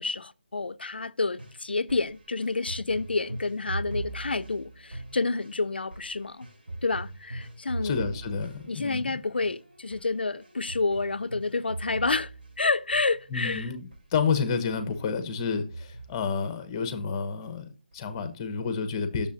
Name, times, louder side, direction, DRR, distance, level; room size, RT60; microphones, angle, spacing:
voice 1, 0.0-6.5 6.8-8.0 8.7-12.3 12.6-13.7, left 3 dB, 90° left, 0.4 m, -29 dB
sound 1, 1.3-13.5 13.9-14.1 14.4-16.5 16.9-17.5 17.9-18.0, right 2 dB, 75° right, 3.4 m, -41 dB
voice 2, 7.8-9.1 13.3-19.3, left 5 dB, 25° left, 0.9 m, -30 dB
8.0 x 6.8 x 2.6 m
figure-of-eight pair, 160°, 5 cm